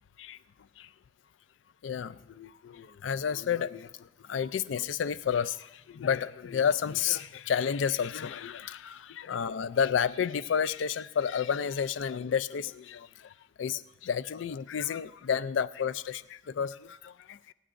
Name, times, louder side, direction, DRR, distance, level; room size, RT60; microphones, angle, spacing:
voice 1, 1.8-3.9 4.3-13.1 13.6-17.5, left 7 dB, 85° left, 16 dB, 0.4 m, -31 dB
25.5 x 9.9 x 2.6 m, 0.95 s
head